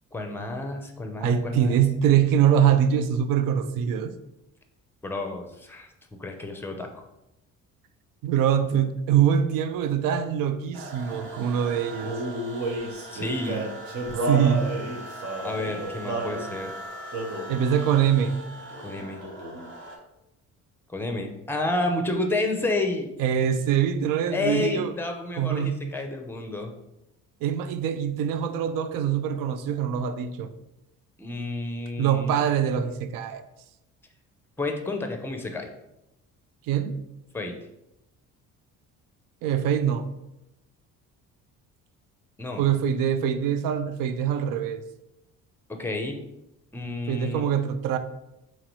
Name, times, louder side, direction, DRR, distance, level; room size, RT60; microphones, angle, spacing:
voice 1, 0.1-1.8 5.0-5.9 6.2-7.0 13.1-13.6 15.4-16.7 18.8-19.3 20.9-23.1 24.3-26.7 31.2-32.3 34.6-35.7 37.3-37.6 42.4-42.7 45.7-46.2 46.7-47.5, left 2 dB, 5° left, 0.6 m, -30 dB
voice 2, 1.2-4.1 8.2-12.1 14.2-14.7 17.5-18.4 23.2-24.9 25.4-25.8 27.4-30.5 32.0-33.4 36.7-37.0 39.4-40.1 42.6-44.8 47.1-48.0, right 9 dB, 75° right, 0.5 m, -23 dB
sound 1, 10.7-20.0, right 1 dB, 35° right, 0.9 m, -41 dB
Male singing, 12.0-16.4 17.1-17.5 18.2-18.4 18.7-19.7, right 1 dB, 60° right, 1.1 m, -31 dB
3.9 x 3.1 x 3.0 m
cardioid pair, 95°, 33 cm